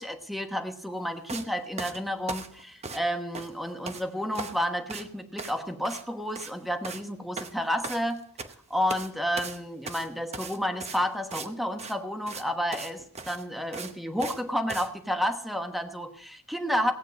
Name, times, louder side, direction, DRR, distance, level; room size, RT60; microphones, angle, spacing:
voice 1, 0.0-8.2 8.7-16.9, equal, ahead, 5 dB, 1.1 m, -31 dB
sound 1, 1.3-1.5 1.8-3.1 3.3-4.0 4.3-4.6 4.9-5.1 5.4-5.6 5.9-6.0 6.3-6.6 6.8-7.1 7.4-8.6 8.9-9.1 9.4-11.5 11.8-12.0 12.3-12.4 12.7-12.9 13.2-14.4 14.7-14.9, right 4 dB, 30° right, 0.9 m, -38 dB
17.5 x 8.9 x 5.2 m, 0.62 s
head